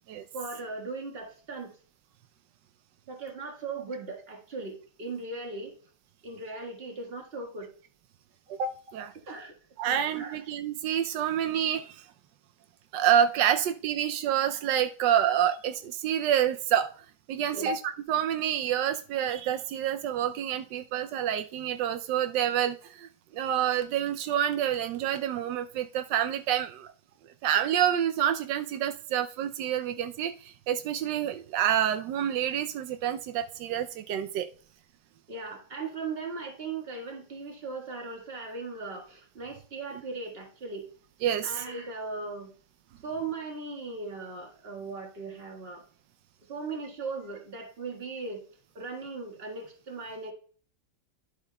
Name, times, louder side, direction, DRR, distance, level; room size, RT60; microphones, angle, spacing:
voice 1, 0.3-1.8 3.1-5.7 6.2-7.7 8.5-8.6 9.3-9.6 9.9-10.4 17.5-17.7 35.3-40.9 41.4-42.5 43.0-45.8 46.5-48.4 48.8-50.3, right 3 dB, 35° right, 2 dB, 1.7 m, -38 dB
voice 2, 8.5-9.1 9.8-12.0 12.9-16.9 17.3-26.9 27.4-34.5 41.2-41.5, right 10 dB, 85° right, 8 dB, 1.2 m, -28 dB
11.0 x 7.5 x 2.2 m, 0.42 s
omnidirectional pair, 1.9 m